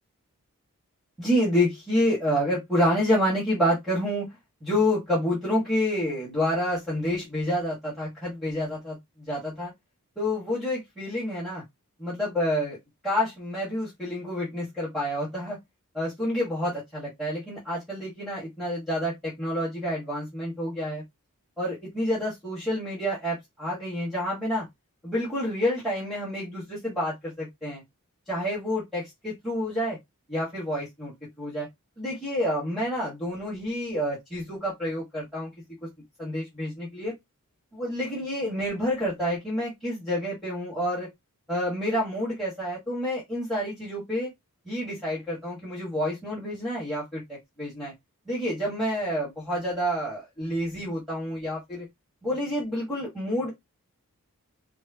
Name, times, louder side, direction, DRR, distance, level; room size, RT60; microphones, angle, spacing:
voice 1, 1.2-4.3 4.6-9.7 10.2-11.6 12.0-12.8 13.0-15.6 15.9-21.0 21.6-24.6 25.0-27.8 28.3-30.0 30.3-31.7 32.0-35.5 36.2-37.1 37.7-41.1 41.5-44.3 44.6-47.2 47.6-47.9 48.3-51.9 52.2-53.5, equal, ahead, 1.6 m, -28 dB
4.6 x 2.1 x 2.8 m
head